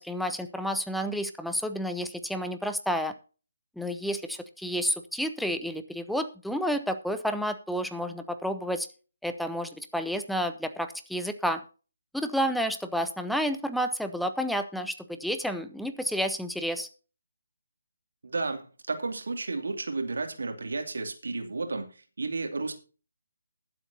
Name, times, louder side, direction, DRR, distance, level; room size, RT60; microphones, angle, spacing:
voice 1, 0.0-3.1 3.8-8.9 9.2-11.6 12.1-16.9, equal, ahead, 8 dB, 0.7 m, -30 dB
voice 2, 18.2-22.7, right 3 dB, 60° right, 5 dB, 2.6 m, -32 dB
21.0 x 7.8 x 2.8 m, 0.36 s
figure-of-eight pair, 150°, 0 cm